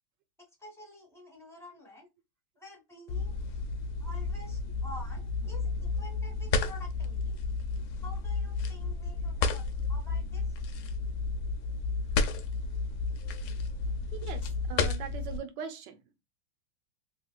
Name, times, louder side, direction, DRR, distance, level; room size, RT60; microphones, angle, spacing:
voice 1, 0.6-2.1 2.6-3.3 4.0-7.4 8.0-9.6 9.9-10.6, left 1 dB, 5° left, 0.5 m, -49 dB
sound 1, 3.1-15.4, left 4 dB, 75° left, 0.9 m, -32 dB
voice 2, 14.1-16.0, right 7 dB, 75° right, 1.1 m, -41 dB
3.2 x 2.8 x 2.2 m
omnidirectional pair, 2.2 m